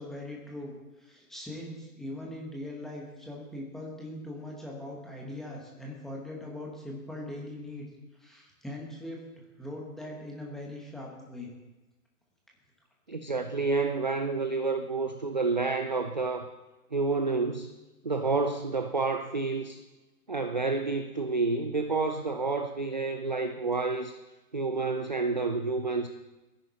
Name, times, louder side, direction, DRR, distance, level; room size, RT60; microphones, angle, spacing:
voice 1, 0.0-7.8 8.2-9.2 9.6-11.5, left 1 dB, ahead, -2 dB, 1.1 m, -41 dB
voice 2, 13.1-16.5 16.9-17.7 18.0-19.8 20.3-24.1 24.5-26.1, right 3 dB, 30° right, 7 dB, 0.4 m, -29 dB
26.5 x 10.5 x 4.2 m, 1.1 s
hypercardioid pair, 155°, 45 cm